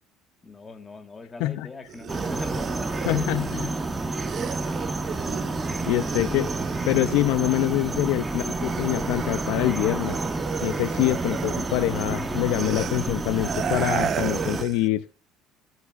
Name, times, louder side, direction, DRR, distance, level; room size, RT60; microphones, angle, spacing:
voice 1, 0.4-3.4, left 3 dB, 25° left, 1.5 m, -41 dB
sound 1, 1.9-8.1 8.4-14.9, right 8 dB, 45° right, 0.5 m, -35 dB
sound 2, 2.1-14.6, right 2 dB, 20° right, 1.1 m, -29 dB
voice 2, 3.1-3.7 5.9-6.5 6.9-10.2 10.6-15.1, left 16 dB, 75° left, 0.4 m, -25 dB
13.5 x 6.0 x 2.4 m
supercardioid pair, 85°, 0 cm